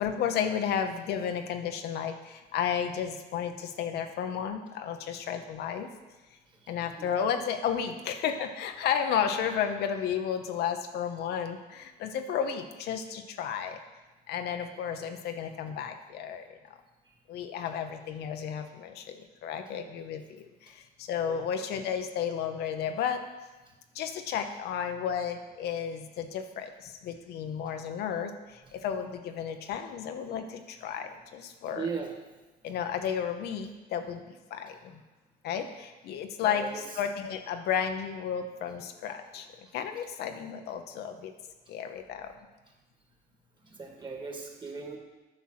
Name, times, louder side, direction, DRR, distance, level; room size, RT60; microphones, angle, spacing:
voice 1, 0.0-5.9 6.7-13.8 14.3-16.6 17.3-23.2 23.9-31.9 32.6-35.0 35.4-39.5 39.7-41.3 41.7-42.3, left 8 dB, 75° left, 6 dB, 0.9 m, -33 dB
voice 2, 31.8-32.1 36.4-36.8 43.6-45.0, right 5 dB, 25° right, 2 dB, 2.0 m, -37 dB
10.0 x 6.2 x 5.8 m, 1.2 s
cardioid pair, 110°, 17 cm